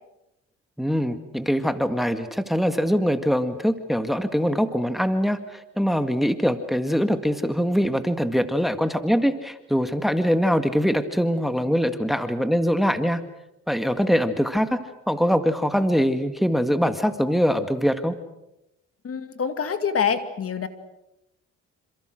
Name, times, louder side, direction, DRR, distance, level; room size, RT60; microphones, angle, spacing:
voice 1, 0.8-13.2 13.7-14.8 15.1-18.2, equal, ahead, 8 dB, 1.9 m, -23 dB
voice 2, 19.0-20.7, left 6 dB, 50° left, 9 dB, 2.6 m, -26 dB
28.0 x 27.0 x 6.5 m, 0.89 s
cardioid pair, 90°, 30 cm